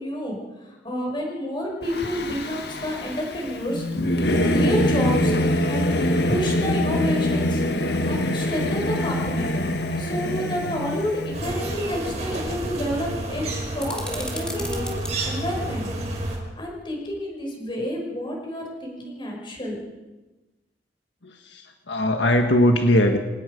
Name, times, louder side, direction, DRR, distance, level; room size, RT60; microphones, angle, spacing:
voice 1, 0.0-3.9 4.3-5.3 5.7-5.9 6.3-9.5 10.0-15.9 16.2-19.8, equal, 25° left, 0 dB, 5.9 m, -29 dB
Singing / Musical instrument, 1.9-11.4, left 1 dB, 60° left, 1.6 m, -24 dB
sound 1, 11.3-16.4, right 1 dB, 40° right, 5.4 m, -30 dB
sound 2, 13.8-15.1, left 1 dB, 5° left, 2.9 m, -35 dB
voice 2, 21.2-23.2, left 1 dB, 80° left, 4 dB, 1.7 m, -20 dB
26.5 x 18.5 x 5.3 m, 1.1 s
head